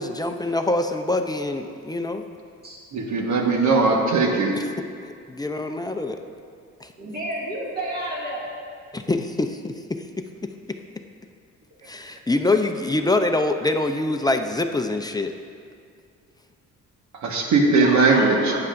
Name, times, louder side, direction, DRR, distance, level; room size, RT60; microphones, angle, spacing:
voice 1, 0.0-2.2 4.5-4.6 5.3-6.2 6.8-6.9 8.9-10.0 11.9-15.3, left 2 dB, 15° left, 5 dB, 0.6 m, -24 dB
voice 2, 2.9-4.5 17.2-18.5, right 3 dB, 70° right, 0 dB, 1.5 m, -19 dB
voice 3, 7.0-8.5 17.6-18.6, right 1 dB, 30° right, -5 dB, 2.2 m, -30 dB
14.5 x 9.6 x 2.6 m, 2.2 s
cardioid pair, 90°, 30 cm